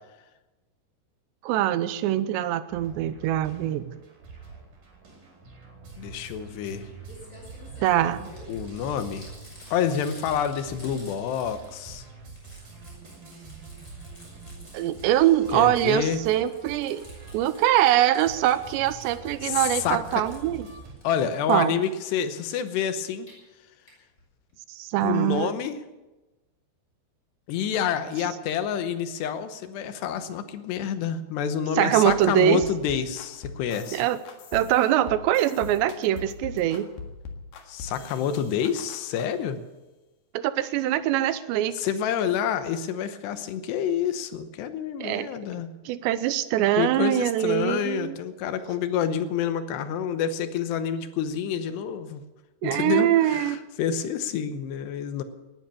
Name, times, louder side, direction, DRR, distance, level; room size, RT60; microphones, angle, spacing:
voice 1, 1.4-3.9 7.8-8.3 14.7-17.0 17.3-20.7 21.5-21.7 24.7-25.5 31.8-32.6 33.9-34.2 34.5-36.9 40.3-41.7 45.0-45.3 45.9-48.2 52.6-53.6, right 12 dB, 85° right, 13 dB, 3.0 m, -23 dB
sound 1, 2.7-20.9, right 4 dB, 50° right, 5.7 m, -45 dB
voice 2, 6.0-6.9 8.5-9.3 9.7-12.0 15.5-16.2 19.4-20.2 21.0-23.3 25.0-25.8 27.5-34.0 37.7-39.6 41.7-45.7 46.8-52.2 52.6-55.2, left 8 dB, 75° left, 10 dB, 3.0 m, -28 dB
Crumpling crinkling, 7.0-11.9 12.2-15.3 15.6-19.2 19.5-21.0 21.5-21.9 23.0-23.3 23.9-24.0 24.2-24.3 24.5-24.6, left 1 dB, 20° left, 6.3 m, -51 dB
sound 2, 32.1-39.3, left 4 dB, 60° left, 3.0 m, -42 dB
19.5 x 10.5 x 6.9 m, 1.1 s
omnidirectional pair, 5.1 m